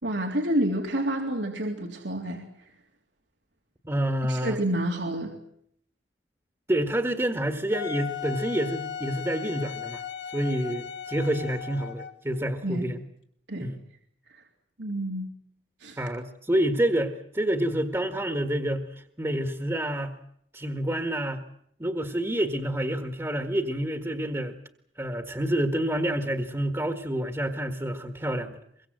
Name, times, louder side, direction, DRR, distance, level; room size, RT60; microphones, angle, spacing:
voice 1, 0.0-2.4 4.3-5.3 12.6-12.9 13.5-13.7 14.3-14.4 14.8-15.3 15.8-16.0, right 1 dB, 85° right, 1 dB, 3.5 m, -28 dB
voice 2, 3.8-4.6 6.7-10.0 10.3-13.0 13.6-13.8 16.0-18.9 19.2-20.1 20.5-21.4 21.8-24.5 25.0-28.6, right 1 dB, 15° right, 6 dB, 1.7 m, -28 dB
Wind instrument woodwind instrument, 7.7-12.2, left 8 dB, 80° left, 2.8 m, -37 dB
24.0 x 23.5 x 7.8 m, 0.69 s
head